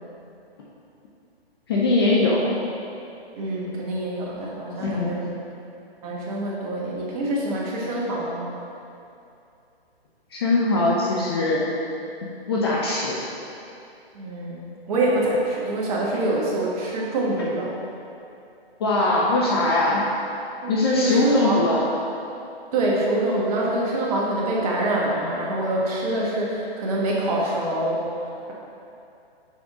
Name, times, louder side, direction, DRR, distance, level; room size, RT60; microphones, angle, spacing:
voice 1, 1.7-2.5 4.8-5.1 10.3-11.6 12.5-13.2 18.8-20.0 20.7-21.8, left 2 dB, 25° left, -5 dB, 0.5 m, -21 dB
voice 2, 3.4-5.3 6.0-8.5 14.1-17.7 20.6-21.6 22.7-28.0, right 1 dB, 35° right, -4 dB, 1.3 m, -25 dB
6.2 x 5.1 x 3.6 m, 2.7 s
hypercardioid pair, 140°, 31 cm